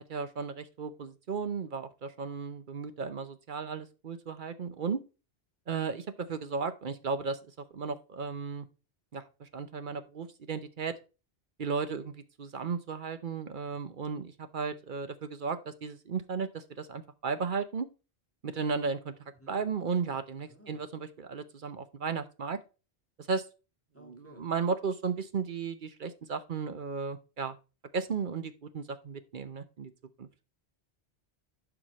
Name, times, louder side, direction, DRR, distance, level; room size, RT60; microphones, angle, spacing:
voice 1, 0.1-5.0 5.7-8.7 9.1-10.9 11.6-17.9 18.4-22.6 23.3-23.4 24.0-27.6 27.9-29.9 30.2-30.4, right 5 dB, 55° right, 0.8 m, -35 dB
voice 2, 20.5-20.8 23.9-24.5, right 1 dB, 15° left, 1.9 m, -55 dB
11.5 x 4.9 x 3.0 m
omnidirectional pair, 1.1 m